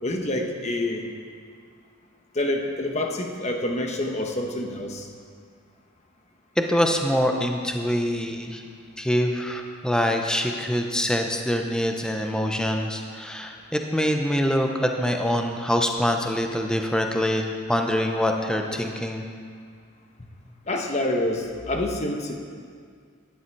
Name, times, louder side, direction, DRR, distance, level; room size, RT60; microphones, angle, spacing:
voice 1, 0.0-1.0 2.3-5.1 20.2-20.3 20.7-22.3, left 1 dB, 35° left, 2 dB, 1.2 m, -27 dB
voice 2, 6.6-8.6 9.0-19.2, equal, 5° left, 3 dB, 0.8 m, -24 dB
12.0 x 10.5 x 4.7 m, 2.1 s
head